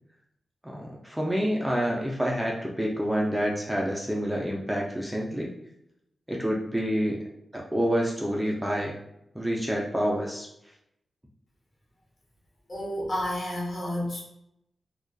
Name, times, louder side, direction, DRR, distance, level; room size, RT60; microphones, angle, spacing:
voice 1, 0.6-5.5 6.3-7.2 7.5-8.9 9.3-10.5, equal, 5° right, -2 dB, 0.4 m, -28 dB
voice 2, 12.7-14.2, left 1 dB, 50° left, -4 dB, 1.1 m, -30 dB
2.4 x 2.2 x 2.3 m, 0.79 s
cardioid pair, 75°, 0 cm